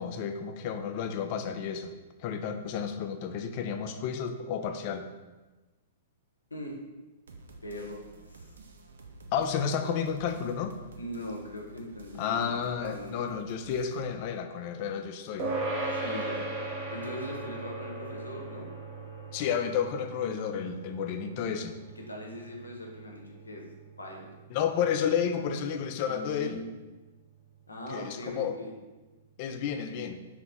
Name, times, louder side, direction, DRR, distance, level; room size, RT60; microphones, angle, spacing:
voice 1, 0.0-1.9 2.2-5.1 9.3-10.8 12.2-15.5 19.3-21.8 24.5-26.6 27.9-28.5 29.4-30.2, left 7 dB, 45° left, 7 dB, 0.3 m, -31 dB
sound 1, 7.3-14.0, right 3 dB, 75° right, 0.4 m, -51 dB
voice 2, 7.6-8.0 8.3-8.5 11.0-13.3 15.9-16.4 16.9-18.7 22.0-23.6 24.0-24.3 26.1-26.7 27.7-28.7, left 1 dB, 90° left, 0 dB, 0.6 m, -40 dB
sound 2, 15.4-25.1, right 2 dB, 35° right, 0.8 m, -38 dB
3.0 x 2.5 x 3.4 m, 1.2 s
hypercardioid pair, 110°, 0 cm